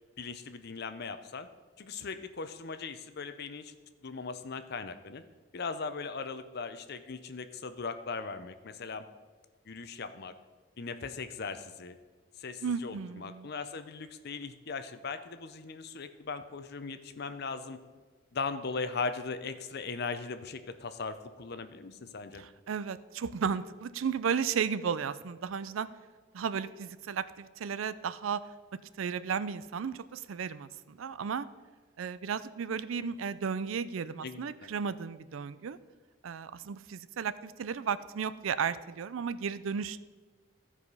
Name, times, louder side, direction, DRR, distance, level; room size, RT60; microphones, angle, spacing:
voice 1, 0.2-1.5 1.8-3.7 4.0-5.2 5.5-9.0 9.7-10.3 10.8-12.0 12.4-17.8 18.3-22.5 34.2-34.7, left 4 dB, 55° left, 10 dB, 0.6 m, -39 dB
voice 2, 12.6-13.5 22.4-25.9 26.3-28.4 28.7-31.5 32.0-35.8 36.2-40.0, right 6 dB, 80° right, 15 dB, 0.4 m, -34 dB
14.5 x 4.9 x 5.4 m, 1.4 s
head